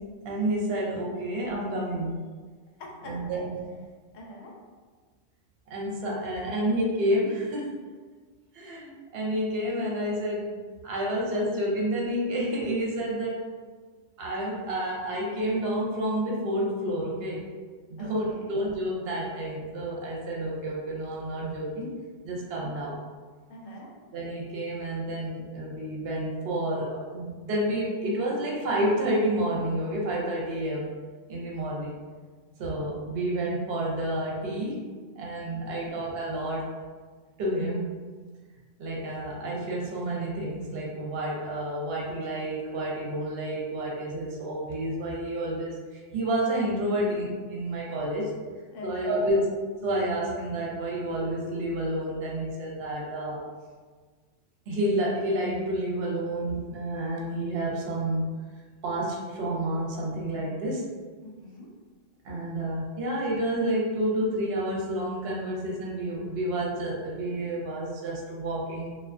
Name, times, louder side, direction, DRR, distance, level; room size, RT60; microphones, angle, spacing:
voice 1, 0.2-2.2 3.0-3.5 5.7-7.7 8.5-13.5 14.2-17.5 17.9-23.0 24.1-30.9 31.3-31.9 32.6-34.8 35.1-36.7 37.4-37.9 38.8-48.4 48.8-49.6 49.8-53.5 54.7-58.2 58.8-60.9 62.2-68.9, right 1 dB, 65° right, -3 dB, 0.8 m, -29 dB
voice 2, 2.8-3.4 4.1-4.5 18.0-18.6 22.6-22.7 23.5-23.9 35.5-35.9 48.7-49.4 61.2-61.7, left 2 dB, 90° left, -1 dB, 0.9 m, -44 dB
2.3 x 2.3 x 2.4 m, 1.4 s
omnidirectional pair, 1.2 m